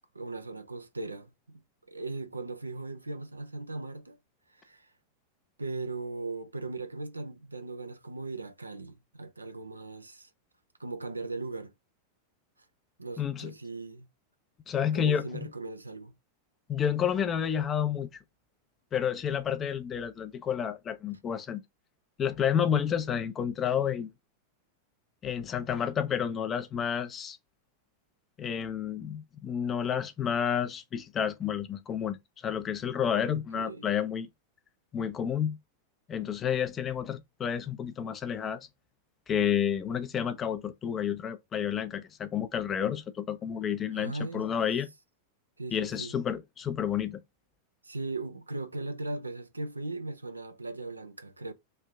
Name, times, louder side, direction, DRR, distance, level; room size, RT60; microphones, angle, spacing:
voice 1, 0.1-1.6 1.9-4.2 4.5-4.9 5.6-10.3 10.8-11.7 13.0-14.1 14.9-16.1 33.2-33.9 43.9-44.5 45.6-46.1 47.8-51.5, right 3 dB, 80° right, 0.5 m, -38 dB
voice 2, 13.2-13.5 14.7-15.5 16.7-18.1 18.9-21.6 22.2-24.1 25.2-27.4 28.4-32.2 32.4-34.3 34.9-35.6 36.1-38.7 39.3-44.9 45.7-47.2, left 8 dB, 25° left, 0.5 m, -30 dB
3.2 x 2.7 x 3.4 m
figure-of-eight pair, 90°, 0 cm